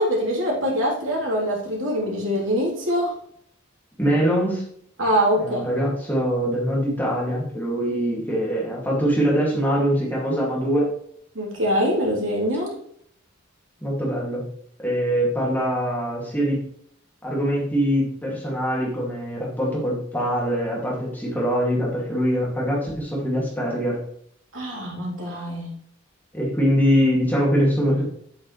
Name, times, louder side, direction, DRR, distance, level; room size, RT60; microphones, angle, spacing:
voice 1, 0.0-3.1 5.0-5.6 11.3-12.7 24.5-25.7, equal, 70° right, -4 dB, 3.5 m, -23 dB
voice 2, 4.0-4.6 5.4-10.9 13.8-14.5 14.8-16.6 17.2-24.0 26.3-28.0, equal, 10° left, -4 dB, 2.4 m, -23 dB
8.5 x 8.4 x 3.3 m, 0.65 s
head